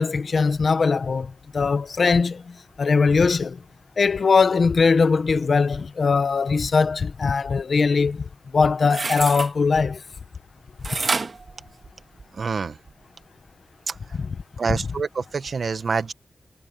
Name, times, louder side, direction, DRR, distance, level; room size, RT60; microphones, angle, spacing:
voice 1, 0.0-3.6 4.0-8.3 8.5-10.0 14.1-14.4 14.7-14.8, left 4 dB, 65° left, 1.2 m, -21 dB
sound 1, 8.8-9.5 10.8-12.4 12.9-13.0, right 4 dB, 55° right, 2.1 m, -28 dB
voice 2, 12.4-12.8 13.9-14.0 14.6-16.1, right 5 dB, 70° right, 1.2 m, -26 dB
wide cardioid pair, 100°, 0 cm